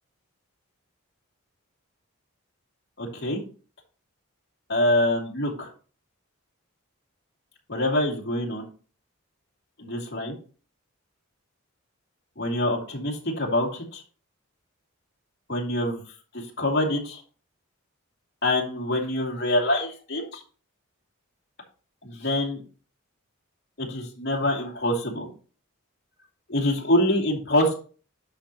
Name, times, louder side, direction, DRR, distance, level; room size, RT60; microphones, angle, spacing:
voice 1, 3.0-3.4 4.7-5.7 7.7-8.6 9.8-10.3 12.4-14.0 15.5-16.0 16.3-17.2 18.4-20.4 22.0-22.6 23.8-25.3 26.5-27.7, left 1 dB, 50° left, 0 dB, 2.5 m, -25 dB
10.5 x 6.5 x 2.9 m, 0.38 s
head